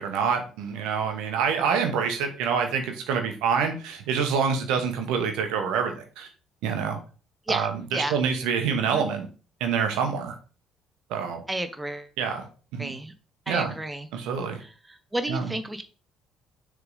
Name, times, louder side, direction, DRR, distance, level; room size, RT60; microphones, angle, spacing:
voice 1, 0.0-6.3 6.6-7.0 7.5-9.3 9.6-10.3 11.1-11.4 12.2-12.5 12.7-12.9 13.5-13.7 14.1-14.6 15.3-15.5, right 6 dB, 65° right, 5 dB, 1.1 m, -26 dB
voice 2, 7.5-8.2 8.9-9.1 11.5-12.1 12.8-13.1 13.5-14.1 14.6-15.8, right 1 dB, 15° right, 9 dB, 0.7 m, -32 dB
6.7 x 3.6 x 3.9 m, 0.37 s
figure-of-eight pair, 50°, 0 cm